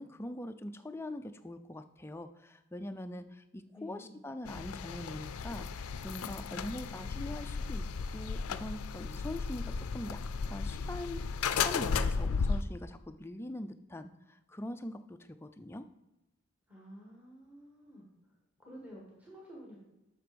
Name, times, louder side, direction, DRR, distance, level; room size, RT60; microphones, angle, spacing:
voice 1, 0.0-7.8 8.1-10.2 10.5-15.9, left 1 dB, 10° left, 8 dB, 0.3 m, -43 dB
voice 2, 3.7-4.2 6.4-7.4 16.7-19.8, equal, 5° right, -4 dB, 1.5 m, -51 dB
sound 1, 4.4-12.6, left 5 dB, 80° left, 0.4 m, -35 dB
7.6 x 6.0 x 5.1 m, 1.0 s
head